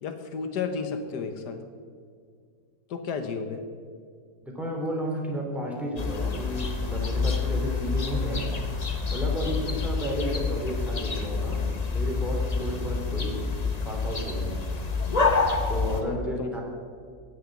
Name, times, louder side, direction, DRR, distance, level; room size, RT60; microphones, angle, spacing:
voice 1, 0.0-1.6 2.9-3.6 9.5-9.9 16.1-16.5, left 5 dB, 90° left, 7 dB, 1.6 m, -33 dB
voice 2, 4.5-8.4 9.1-11.6 11.9-13.4 13.8-14.5 15.7-16.6, equal, ahead, -2 dB, 3.0 m, -32 dB
sound 1, 6.0-16.0, left 4 dB, 30° left, 1.0 m, -28 dB
18.0 x 6.5 x 7.4 m, 2.1 s
omnidirectional pair, 1.7 m